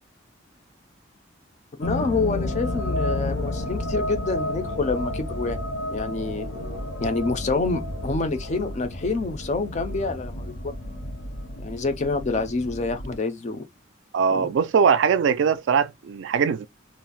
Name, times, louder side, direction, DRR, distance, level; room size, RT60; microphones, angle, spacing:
sound 1, 1.8-13.2, left 1 dB, 75° left, 0.8 m, -31 dB
voice 1, 1.8-5.6 5.9-6.5 7.0-10.7 11.6-13.7 14.3-14.5, left 3 dB, 35° left, 0.4 m, -27 dB
voice 2, 14.1-16.7, right 6 dB, 65° right, 0.3 m, -21 dB
2.5 x 2.0 x 3.9 m
head